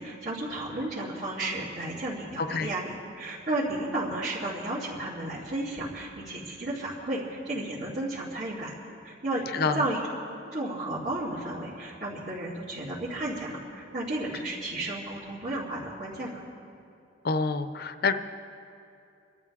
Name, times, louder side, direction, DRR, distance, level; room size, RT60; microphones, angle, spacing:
voice 1, 0.0-8.7 9.0-10.0 10.4-16.4, right 1 dB, 65° right, -12 dB, 3.5 m, -33 dB
voice 2, 2.4-2.7 9.5-9.8 17.2-18.1, left 4 dB, 55° left, 10 dB, 0.7 m, -27 dB
27.5 x 13.0 x 3.7 m, 2.6 s
head